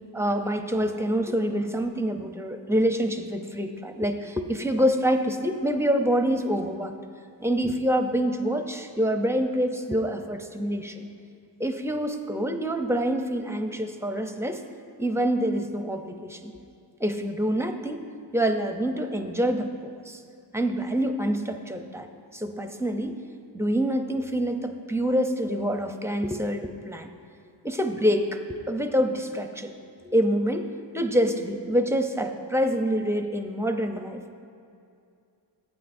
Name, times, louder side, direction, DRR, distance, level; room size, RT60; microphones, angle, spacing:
voice 1, 0.1-6.9 7.4-11.1 11.6-14.6 15.0-16.5 17.0-18.0 18.3-20.2 20.5-23.2 23.5-27.1 27.6-29.7 30.0-30.7 30.9-34.2, equal, 5° right, 5 dB, 0.5 m, -26 dB
15.0 x 8.8 x 2.6 m, 2.5 s
wide cardioid pair, 95°, 45 cm